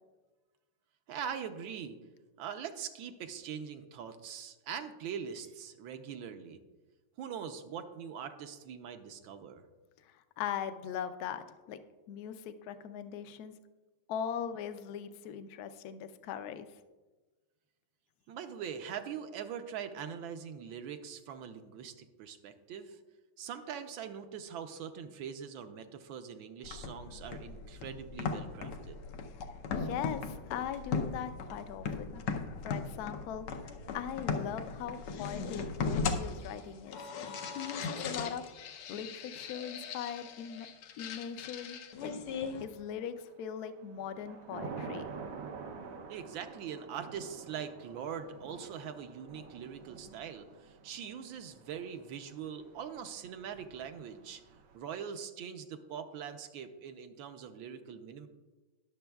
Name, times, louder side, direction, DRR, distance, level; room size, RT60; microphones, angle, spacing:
voice 1, 1.1-2.0 2.4-6.6 7.2-9.7 18.3-23.0 23.4-29.0 46.1-54.4 54.7-58.3, right 7 dB, 75° right, 8 dB, 1.4 m, -42 dB
voice 2, 10.4-11.8 12.1-13.5 14.1-16.7 29.7-32.2 32.6-33.5 33.9-37.0 37.5-38.4 38.9-40.7 41.0-42.1 42.6-45.1, left 8 dB, 75° left, 10 dB, 0.9 m, -40 dB
sound 1, 26.6-42.6, left 5 dB, 90° left, 1.7 m, -38 dB
Thunder / Rain, 42.7-43.2 43.6-54.8, right 5 dB, 90° right, 1.7 m, -48 dB
20.5 x 7.0 x 2.3 m, 1.2 s
omnidirectional pair, 2.3 m